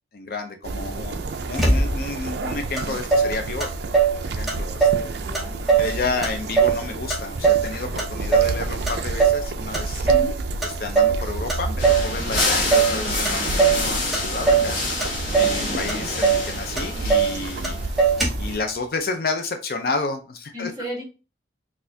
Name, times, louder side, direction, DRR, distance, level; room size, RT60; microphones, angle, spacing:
voice 1, 0.1-3.7 4.2-5.1 5.8-10.0 10.6-17.8 18.1-20.7, left 3 dB, 50° left, 6 dB, 0.4 m, -31 dB
sound 1, 0.6-18.6, right 2 dB, 65° right, 0.4 m, -31 dB
voice 2, 0.7-1.3 5.1-5.8 10.0-10.3 15.5-15.8 20.5-21.0, equal, 20° right, -3 dB, 1.2 m, -35 dB
Motor vehicle (road), 1.6-2.2 2.8-2.9 3.1-4.2 4.5-5.1 5.3-5.9 6.2-7.7 8.0-8.6 8.9-9.4 9.7-10.3 10.6-11.2 11.5-12.1 12.4-13.0 13.2-13.8 14.1-14.7 15.0-15.6 15.9-16.0 16.2-16.5 16.8-17.3 17.6-17.7 18.0-18.5, right 5 dB, ahead, 0.8 m, -19 dB
sound 2, 11.8-18.1, left 2 dB, 80° left, 1.1 m, -27 dB
4.1 x 2.4 x 2.6 m, 0.32 s
head